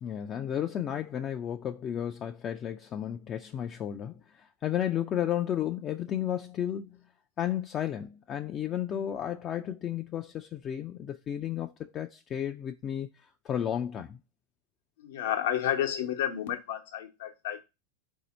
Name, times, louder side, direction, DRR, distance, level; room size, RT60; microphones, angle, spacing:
voice 1, 0.0-7.0 7.4-13.1 13.4-14.2, left 10 dB, 35° left, 0.3 m, -33 dB
voice 2, 15.0-17.6, left 10 dB, 75° left, 0.8 m, -31 dB
4.1 x 2.7 x 4.1 m
hypercardioid pair, 110°, 0 cm